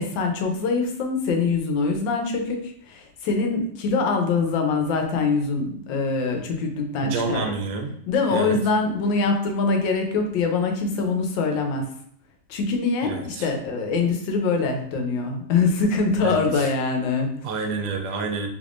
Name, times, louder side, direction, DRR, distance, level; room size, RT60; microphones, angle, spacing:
voice 1, 0.0-7.5 8.1-11.9 12.5-17.3, left 4 dB, 90° left, 4 dB, 1.4 m, -24 dB
voice 2, 7.0-7.9 8.3-8.6 13.0-13.5 16.2-16.7 17.4-18.5, right 4 dB, 80° right, 4 dB, 1.3 m, -28 dB
3.5 x 3.3 x 2.4 m, 0.66 s
omnidirectional pair, 2.0 m